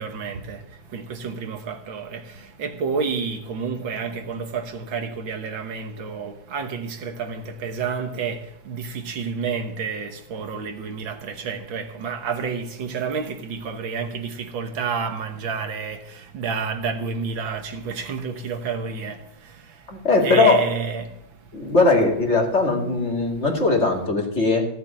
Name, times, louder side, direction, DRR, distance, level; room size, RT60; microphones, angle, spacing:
voice 1, 0.0-21.7 22.7-23.4, right 5 dB, 70° right, 2.0 m, -30 dB
voice 2, 19.9-20.6 21.5-24.7, left 3 dB, 30° left, 2.7 m, -19 dB
15.5 x 7.0 x 8.8 m
omnidirectional pair, 2.3 m